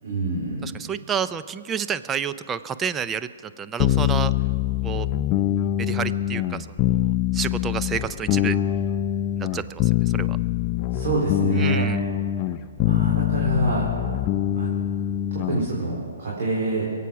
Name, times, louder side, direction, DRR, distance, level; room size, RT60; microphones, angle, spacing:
voice 1, 0.0-0.6 10.9-11.9 12.8-13.9 14.5-14.7 15.3-16.9, right 2 dB, 60° right, -4 dB, 3.3 m, -26 dB
voice 2, 0.6-4.3 4.8-5.1 5.8-8.6 9.4-10.4 11.6-12.0, right 7 dB, 15° right, 12 dB, 0.5 m, -30 dB
sound 1, 3.8-15.7, left 12 dB, 30° left, 0.5 m, -24 dB
23.0 x 8.3 x 6.0 m, 2.2 s
hypercardioid pair, 135°, 0 cm